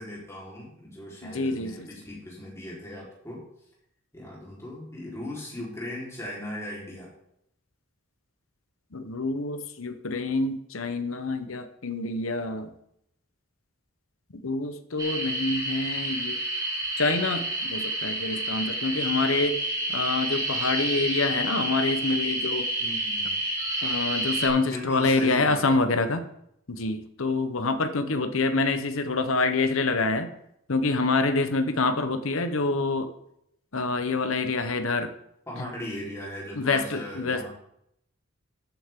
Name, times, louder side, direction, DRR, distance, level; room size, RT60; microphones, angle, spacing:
voice 1, 0.0-3.4 4.1-7.1 22.8-23.4 24.7-26.2 35.5-37.5, left 1 dB, 15° left, -5 dB, 4.1 m, -38 dB
voice 2, 1.2-1.9 8.9-12.7 14.4-16.4 17.0-19.6 19.9-22.7 23.8-26.2 26.7-30.3 30.7-33.1 33.7-35.1 36.6-37.5, left 3 dB, 80° left, 8 dB, 1.0 m, -26 dB
sound 1, 15.0-24.5, right 1 dB, 20° right, 3.8 m, -29 dB
14.0 x 9.1 x 3.8 m, 0.76 s
head